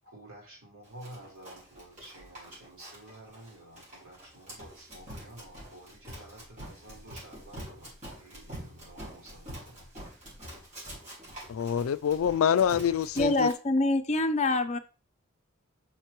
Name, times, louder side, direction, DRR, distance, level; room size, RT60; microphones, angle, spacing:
voice 1, 0.0-10.5, right 1 dB, 70° right, 4.7 m, -51 dB
Run, 1.0-13.5, equal, 35° right, 4.8 m, -46 dB
voice 2, 11.5-13.5, left 8 dB, 75° left, 0.3 m, -26 dB
voice 3, 13.2-14.8, left 2 dB, 35° left, 0.7 m, -25 dB
9.1 x 6.0 x 3.0 m
head